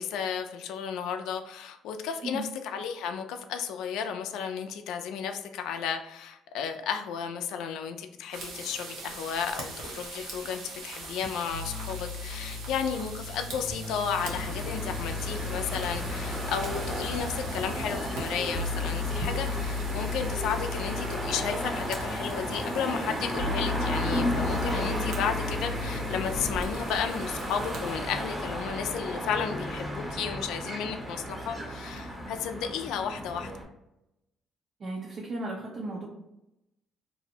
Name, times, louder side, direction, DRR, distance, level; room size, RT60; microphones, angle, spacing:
voice 1, 0.0-33.5, left 7 dB, 80° left, 7 dB, 0.3 m, -33 dB
sound 1, 8.3-27.9, right 2 dB, 85° right, 0.7 m, -43 dB
sound 2, 11.5-26.5, left 4 dB, 35° left, 0.7 m, -36 dB
sound 3, 14.2-33.6, equal, 10° right, 0.7 m, -34 dB
voice 2, 34.8-36.1, right 2 dB, 45° right, -3 dB, 0.5 m, -35 dB
2.5 x 2.0 x 2.7 m, 0.87 s
cardioid pair, 115°, 0 cm